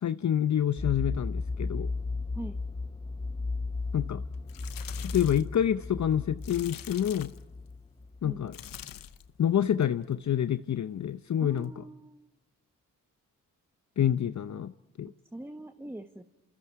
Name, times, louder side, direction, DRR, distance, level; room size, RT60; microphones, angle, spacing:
voice 1, 0.0-1.9 3.9-4.2 5.0-7.3 8.2-8.5 9.4-11.7 14.0-14.7 15.0-15.1, left 10 dB, 60° left, 12 dB, 0.7 m, -27 dB
sound 1, 0.8-8.8, left 3 dB, 15° left, 0.8 m, -35 dB
sound 2, 4.3-5.5 6.4-7.5 8.5-9.3 9.7-10.0 11.6-11.7, left 11 dB, 90° left, 0.9 m, -45 dB
voice 2, 11.4-12.3 15.3-16.2, right 1 dB, 5° right, 6 dB, 1.4 m, -42 dB
28.5 x 27.0 x 4.7 m, 0.98 s
supercardioid pair, 45°, 33 cm